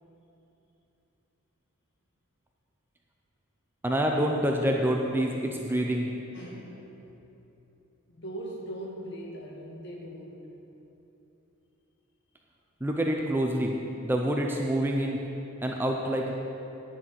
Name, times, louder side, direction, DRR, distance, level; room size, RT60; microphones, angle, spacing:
voice 1, 3.8-6.1 12.8-13.7 14.0-15.2 15.6-16.3, right 1 dB, 10° right, 0 dB, 0.5 m, -27 dB
voice 2, 6.3-6.8 8.1-10.6, right 1 dB, 50° left, -1 dB, 1.6 m, -40 dB
10.0 x 5.8 x 7.6 m, 3.0 s
head